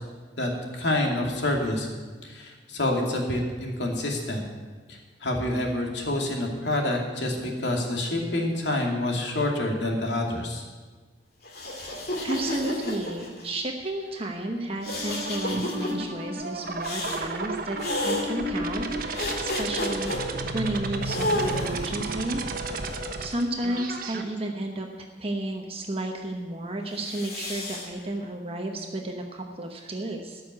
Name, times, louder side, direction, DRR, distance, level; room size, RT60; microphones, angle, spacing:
voice 1, 0.4-1.9 2.2-4.4 4.9-10.6, left 1 dB, 85° left, 1 dB, 2.6 m, -27 dB
sound 1, 11.4-13.5 14.8-15.9 16.8-17.2 17.8-18.3 19.2-20.2 21.0-21.9 22.7-23.9 26.9-27.9, left 1 dB, 60° left, 2.5 m, -31 dB
voice 2, 11.7-22.4 23.2-24.9 25.2-30.4, right 1 dB, 35° right, 2 dB, 1.0 m, -32 dB
sound 2, 14.9-24.2, right 2 dB, 55° right, 1.2 m, -32 dB
13.5 x 6.6 x 9.5 m, 1.4 s
head